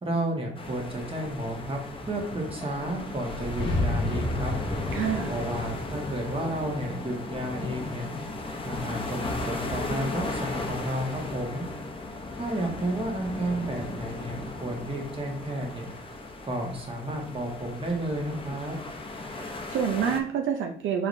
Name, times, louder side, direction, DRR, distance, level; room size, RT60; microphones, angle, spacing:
voice 1, 0.0-4.5 5.3-8.1 8.6-11.6 12.3-15.9 16.4-18.8, right 1 dB, 25° right, 0 dB, 1.3 m, -32 dB
sound 1, 0.6-20.2, left 2 dB, 25° left, 0.7 m, -36 dB
sound 2, 3.1-8.0, left 2 dB, 65° left, 1.1 m, -32 dB
voice 2, 4.9-5.3 19.3-21.1, right 8 dB, 75° right, 3 dB, 0.5 m, -28 dB
4.8 x 3.2 x 2.6 m, 0.68 s
cardioid pair, 85°, 20 cm